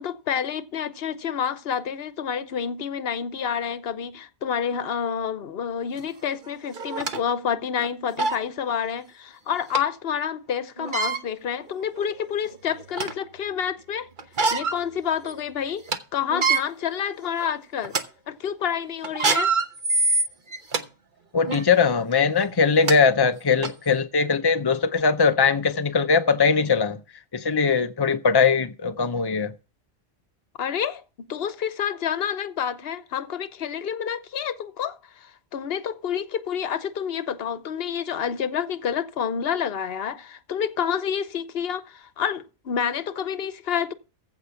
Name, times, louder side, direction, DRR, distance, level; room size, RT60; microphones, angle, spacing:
voice 1, 0.0-14.1 14.5-18.0 18.3-19.5 30.6-31.0 31.3-43.9, left 8 dB, 55° left, 1.0 m, -28 dB
sound 1, 6.0-6.1 6.7-7.2 7.8-7.9 8.2-8.4 9.7-9.8 10.8-11.2 12.0-12.1 12.5-13.2 14.2-14.8 15.2-15.3 15.7-16.0 16.3-16.6 17.2-17.4 17.8-18.0 19.0-20.8 21.4-21.6 22.5-22.6 22.9-23.0 23.6-23.7, right 4 dB, 45° right, 1.1 m, -24 dB
voice 2, 21.3-27.0 27.3-29.5, left 5 dB, 35° left, 0.4 m, -21 dB
15.0 x 5.5 x 5.7 m
omnidirectional pair, 1.3 m